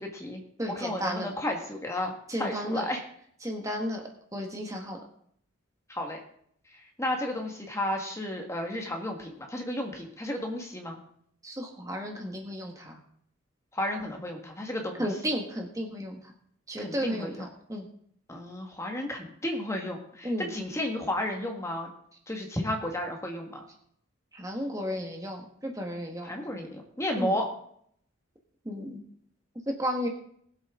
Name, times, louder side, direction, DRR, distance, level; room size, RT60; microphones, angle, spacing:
voice 1, 0.0-0.4 0.8-3.0 5.9-6.2 7.0-11.0 13.7-15.1 16.8-17.5 18.3-21.9 22.3-23.6 26.2-27.5, left 1 dB, 15° left, 2 dB, 1.7 m, -33 dB
voice 2, 0.6-1.3 2.3-2.9 3.4-4.0 4.3-5.0 11.4-13.0 15.0-16.3 16.7-17.9 20.2-20.5 24.3-26.3 27.2-27.3 28.6-29.0 29.7-30.1, equal, 15° right, 2 dB, 1.5 m, -33 dB
20.0 x 7.9 x 3.8 m, 0.66 s
head